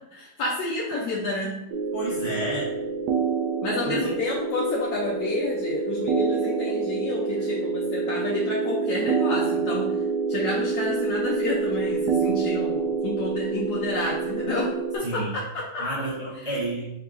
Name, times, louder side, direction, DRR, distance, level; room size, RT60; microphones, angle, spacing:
voice 1, 0.1-1.6 3.6-9.9 10.3-15.8, left 2 dB, 85° left, -4 dB, 1.3 m, -30 dB
sound 1, 1.7-15.0, right 5 dB, 85° right, 1.2 m, -27 dB
voice 2, 1.9-2.7 3.8-4.1 15.0-15.3 15.8-16.9, right 1 dB, 30° right, -9 dB, 1.2 m, -30 dB
4.5 x 3.9 x 2.5 m, 0.85 s
omnidirectional pair, 1.7 m